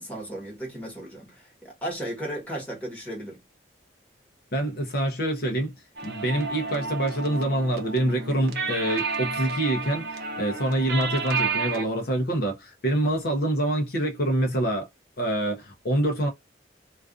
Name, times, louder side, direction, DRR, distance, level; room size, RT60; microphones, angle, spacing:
voice 1, 0.0-3.4, right 1 dB, 10° left, 1.2 m, -35 dB
voice 2, 4.5-5.7 6.0-14.9 15.2-16.3, right 1 dB, 55° left, 0.6 m, -26 dB
sound 1, 6.0-11.8, right 4 dB, 55° right, 0.7 m, -31 dB
2.4 x 2.3 x 2.4 m
head